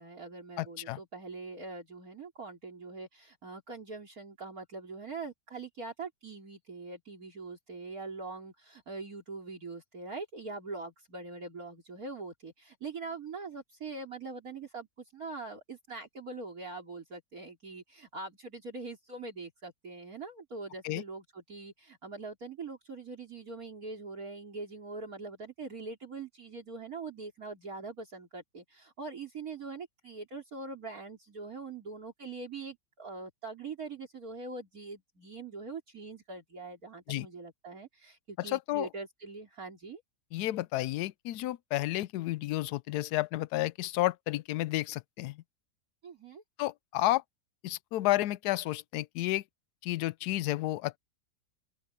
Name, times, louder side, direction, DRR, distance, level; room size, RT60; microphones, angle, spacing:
voice 1, 0.0-14.9 15.1-40.0 46.0-46.4, right 3 dB, 55° right, 3.9 m, -43 dB
voice 2, 0.6-1.0 20.8-21.0 37.1-37.3 38.5-38.9 40.3-45.4 46.6-47.2 47.6-49.4 49.8-51.0, left 16 dB, 75° left, 1.0 m, -31 dB
open air
omnidirectional pair, 1.9 m